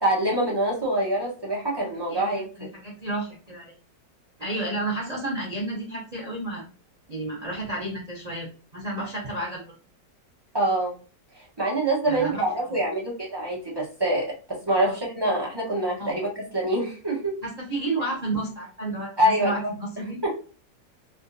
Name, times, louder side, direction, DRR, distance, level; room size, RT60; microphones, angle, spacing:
voice 1, 0.0-2.4 10.5-10.9 11.6-16.3 16.5-17.3 19.2-19.5 20.2-20.3, right 1 dB, 20° right, -4 dB, 0.6 m, -25 dB
voice 2, 2.5-3.8 4.4-6.6 7.1-8.5 8.7-9.6 12.1-12.4 14.8-14.9 16.0-16.2 17.4-20.3, right 2 dB, 85° right, -3 dB, 0.3 m, -31 dB
3.5 x 2.5 x 2.6 m, 0.37 s
omnidirectional pair, 2.0 m